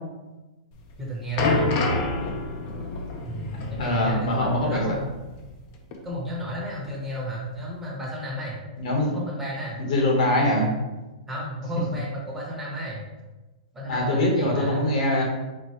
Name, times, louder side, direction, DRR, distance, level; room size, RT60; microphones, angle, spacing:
sound 1, 0.8-5.7 5.9-6.1 6.8-6.9, left 3 dB, 35° left, 0.6 m, -28 dB
voice 1, 1.0-1.8 3.2-5.1 6.0-8.6 8.9-9.9 11.3-13.1 13.7-14.9, right 1 dB, 5° right, -5 dB, 1.0 m, -32 dB
voice 2, 3.8-4.8 8.8-9.3 9.8-10.7 13.9-15.2, left 1 dB, 60° left, -1 dB, 1.2 m, -23 dB
4.4 x 2.3 x 4.4 m, 1.1 s
hypercardioid pair, 160°, 4 cm